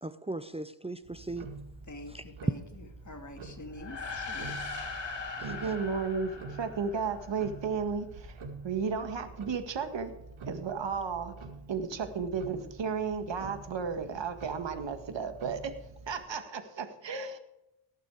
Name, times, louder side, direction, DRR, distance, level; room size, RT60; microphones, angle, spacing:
voice 1, 0.0-1.5 2.1-2.2 5.4-5.7, right 2 dB, 15° right, 13 dB, 0.6 m, -39 dB
Tick-tock, 1.0-16.3, right 3 dB, 80° right, 1.9 m, -47 dB
voice 2, 1.9-4.6, left 2 dB, 35° left, 5 dB, 2.3 m, -46 dB
sound 1, 3.7-7.4, left 3 dB, 60° left, 2.8 m, -40 dB
voice 3, 5.4-8.4 8.6-10.1 10.5-11.3 11.7-15.7 16.1-17.4, right 5 dB, 65° right, 8 dB, 1.8 m, -33 dB
18.5 x 6.7 x 4.9 m, 0.86 s
cardioid pair, 60°, 48 cm